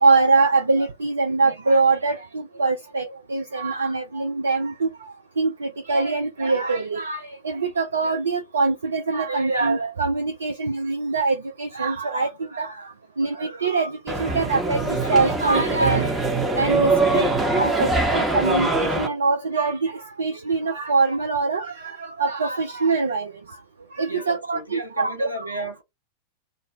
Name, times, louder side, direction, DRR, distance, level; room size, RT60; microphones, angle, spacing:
voice 1, 0.0-12.9 13.2-16.1 16.6-17.3 17.5-23.3 23.9-25.5, right 3 dB, 75° right, 0.3 m, -23 dB
sound 1, 14.1-19.1, right 3 dB, 15° right, 0.7 m, -22 dB
voice 2, 24.1-25.8, right 1 dB, 90° right, 0.8 m, -33 dB
2.4 x 2.0 x 3.0 m
figure-of-eight pair, 90°, 0 cm